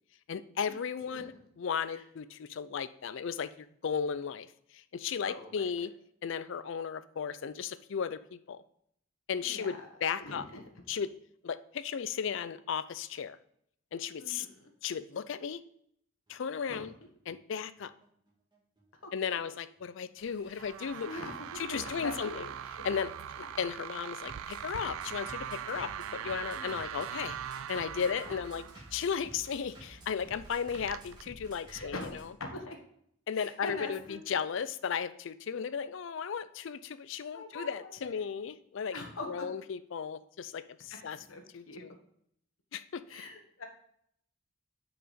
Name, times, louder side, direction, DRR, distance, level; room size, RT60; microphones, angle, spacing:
voice 1, 0.3-4.5 4.7-5.9 6.2-8.6 9.3-10.4 10.9-11.1 11.4-13.4 13.9-14.5 14.8-15.6 16.3-16.9 17.3-17.9 19.1-21.2 21.6-22.5 22.8-23.1 23.4-28.6 28.9-32.3 33.3-39.0 39.2-41.2 41.5-41.9 42.7-43.0, left 7 dB, 60° left, 14 dB, 0.4 m, -35 dB
voice 2, 5.2-5.7 9.4-9.9 10.2-10.6 14.2-14.7 16.7-16.8 19.0-19.1 20.5-20.6 21.0-22.4 26.5-26.7 28.0-28.1 31.7-32.1 32.4-32.8 33.3-34.2 37.3-38.2 38.9-39.5 40.9-41.0 41.3-41.4 41.7-41.8 43.1-43.6, left 2 dB, 75° left, 3 dB, 1.3 m, -42 dB
Bass drum, 16.3-32.2, right 1 dB, 20° right, 1.9 m, -53 dB
sound 1, 20.2-31.2, right 9 dB, 75° right, 0.3 m, -42 dB
6.3 x 4.9 x 5.0 m, 0.71 s
head